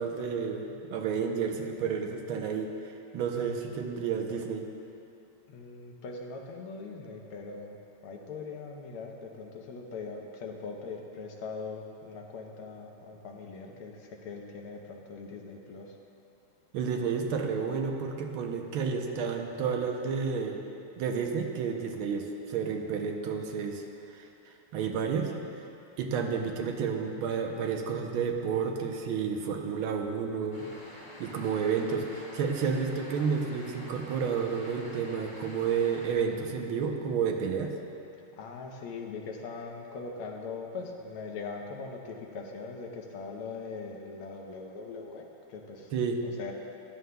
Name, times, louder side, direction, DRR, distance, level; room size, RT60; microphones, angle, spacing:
voice 1, 0.0-2.7 3.1-4.7 16.7-20.6 21.0-23.8 24.1-25.6 26.0-30.7 31.2-37.7 45.9-46.2, right 6 dB, 75° right, 3 dB, 1.6 m, -31 dB
voice 2, 5.5-7.8 8.0-16.0 38.3-45.9 46.2-46.5, left 4 dB, 80° left, 2 dB, 1.7 m, -41 dB
sound 1, 30.5-36.1, equal, 20° left, 2.1 m, -47 dB
14.5 x 11.0 x 2.3 m, 2.7 s
omnidirectional pair, 2.4 m